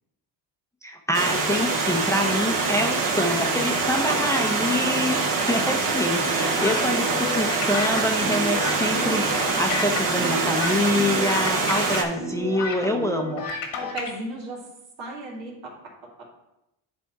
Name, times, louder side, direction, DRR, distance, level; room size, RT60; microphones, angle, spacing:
voice 1, 0.8-13.4, left 1 dB, 5° left, 2 dB, 0.6 m, -26 dB
Stream, 1.1-12.0, right 4 dB, 45° right, 1.2 m, -24 dB
voice 2, 4.0-4.3 13.9-14.6 15.0-15.5, right 2 dB, 80° right, -3 dB, 2.6 m, -33 dB
sound 1, 6.2-14.1, left 3 dB, 75° left, 1.6 m, -31 dB
9.2 x 3.5 x 4.5 m, 0.87 s
cardioid pair, 90°, 45 cm